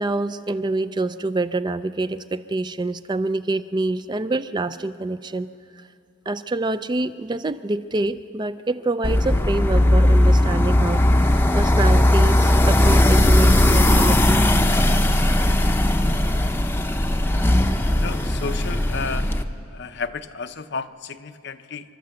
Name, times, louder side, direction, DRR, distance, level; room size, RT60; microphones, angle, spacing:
voice 1, 0.0-5.5 5.8-5.9 6.3-14.5, right 2 dB, 20° right, 12 dB, 0.4 m, -26 dB
sound 1, 9.0-19.4, left 1 dB, 10° left, 0.7 m, -18 dB
voice 2, 17.9-19.3 19.7-22.0, left 4 dB, 60° left, 10 dB, 0.7 m, -32 dB
28.0 x 12.0 x 7.7 m, 2.4 s
head